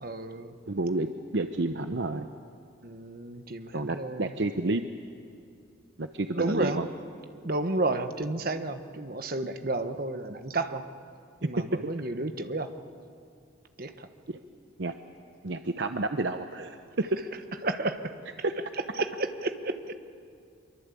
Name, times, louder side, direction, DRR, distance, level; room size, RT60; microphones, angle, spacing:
voice 1, 0.0-0.6 2.8-4.4 6.3-6.8 7.4-10.8 11.4-12.8 13.8-14.1 17.6-18.2 19.0-19.9, right 2 dB, 45° right, 8 dB, 1.2 m, -31 dB
voice 2, 0.7-1.1 1.3-2.3 3.7-4.8 6.0-6.9 11.6-11.7 14.3-14.4 14.8-14.9 15.4-16.8 18.4-18.5, right 2 dB, 60° right, 7 dB, 0.8 m, -30 dB
25.0 x 23.0 x 8.4 m, 2.4 s
head